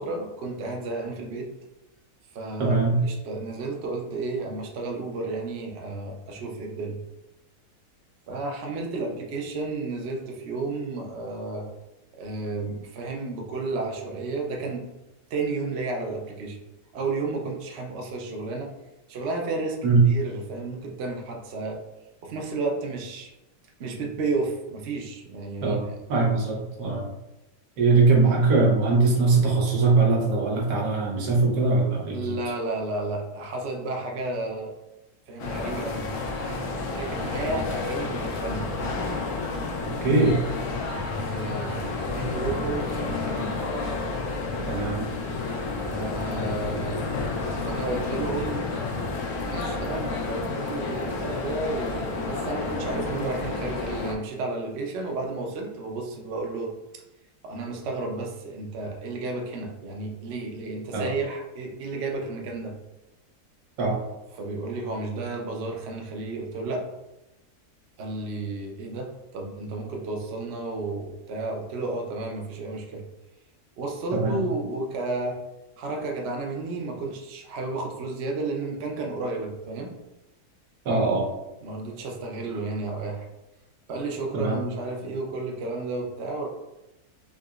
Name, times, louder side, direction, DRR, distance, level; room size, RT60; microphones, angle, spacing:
voice 1, 0.0-1.5 2.3-2.7 3.0-7.0 8.3-11.7 12.1-14.9 15.3-16.6 16.9-18.7 19.1-21.8 22.2-23.3 23.8-26.0 32.1-34.7 35.3-36.1 36.4-38.7 41.2-43.6 45.9-47.0 47.6-48.7 49.3-56.8 57.4-62.8 64.3-66.9 68.0-73.0 73.8-75.4 75.8-79.9 81.6-83.3 83.9-86.5, right 3 dB, 60° right, 1 dB, 0.7 m, -32 dB
voice 2, 2.6-3.0 19.8-20.0 25.6-25.8 26.1-27.0 27.8-32.3 40.0-40.4 44.7-45.1 60.9-61.1 63.8-64.0 74.1-74.4 80.9-81.3 84.3-84.6, right 3 dB, 90° right, -2 dB, 1.4 m, -21 dB
sound 1, 35.4-54.2, left 3 dB, 65° left, 0.9 m, -30 dB
3.7 x 2.8 x 2.4 m, 0.96 s
omnidirectional pair, 1.6 m